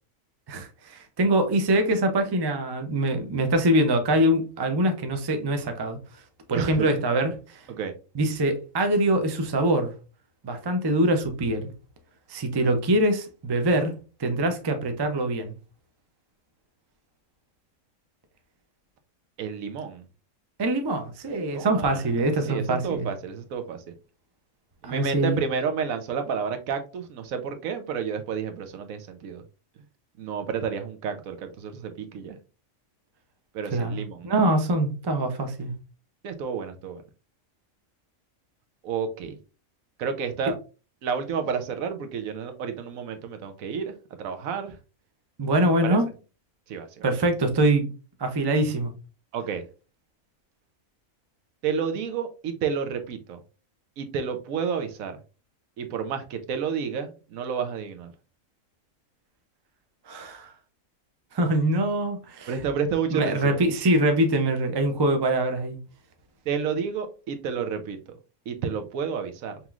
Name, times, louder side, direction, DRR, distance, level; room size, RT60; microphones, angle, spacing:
voice 1, 0.5-6.0 6.5-7.6 8.1-9.9 10.4-11.7 12.3-13.9 14.2-15.5 20.6-23.1 24.8-25.4 33.7-35.7 45.4-46.1 47.0-47.9 48.2-48.9 60.1-60.5 61.3-62.5 63.1-65.8, right 1 dB, 40° right, 0.3 m, -24 dB
voice 2, 6.5-6.9 7.7-7.9 19.4-20.1 21.5-22.1 22.4-23.9 24.8-29.4 30.2-32.4 33.5-34.3 36.2-37.0 38.8-39.4 40.0-40.5 41.0-43.9 44.2-44.8 45.8-46.0 46.7-47.0 49.3-49.6 51.6-53.4 54.0-55.2 55.8-58.1 62.5-63.6 66.5-68.0 68.5-69.6, right 6 dB, 80° right, 1.1 m, -30 dB
5.4 x 3.0 x 2.3 m
omnidirectional pair, 1.4 m